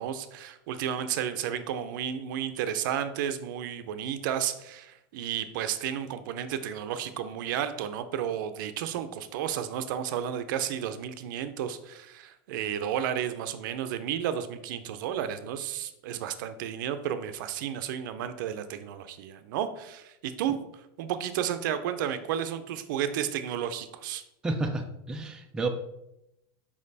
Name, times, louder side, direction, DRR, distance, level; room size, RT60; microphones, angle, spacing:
voice 1, 0.0-20.6 21.0-24.2, right 9 dB, 60° right, 10 dB, 0.6 m, -32 dB
voice 2, 24.4-25.7, right 2 dB, 5° right, 3 dB, 0.4 m, -30 dB
5.3 x 5.0 x 4.0 m, 0.87 s
supercardioid pair, 160°, 12 cm